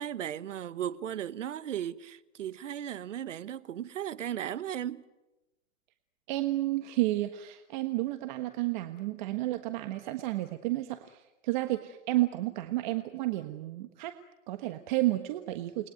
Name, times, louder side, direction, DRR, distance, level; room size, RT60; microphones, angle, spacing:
voice 1, 0.0-5.0, right 10 dB, 70° right, 1.4 m, -36 dB
voice 2, 6.3-14.1 14.5-15.9, right 17 dB, 35° right, 1.4 m, -31 dB
29.0 x 21.5 x 9.4 m
hypercardioid pair, 150°, 39 cm